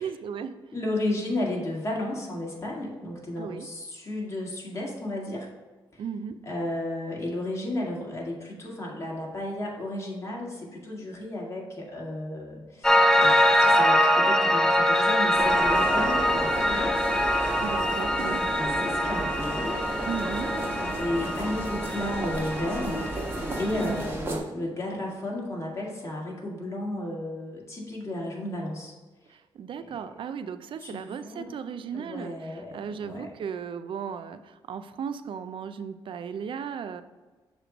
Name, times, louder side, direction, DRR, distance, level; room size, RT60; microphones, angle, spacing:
voice 1, 0.0-0.5 3.4-3.7 6.0-6.4 17.6-18.4 20.1-20.5 23.8-24.4 29.3-37.0, right 7 dB, 60° right, 11 dB, 0.4 m, -36 dB
voice 2, 0.7-5.5 5.9-6.0 6.4-16.9 18.1-19.8 20.8-28.9 29.8-30.0 30.8-31.5 31.9-33.3, left 1 dB, 30° left, -3 dB, 2.0 m, -33 dB
Piano, 12.8-24.1, equal, 5° left, 0.5 m, -24 dB
sound 1, 15.4-24.4, right 1 dB, 25° right, 1.6 m, -33 dB
6.6 x 3.1 x 5.0 m, 1.3 s
cardioid pair, 65°, 10 cm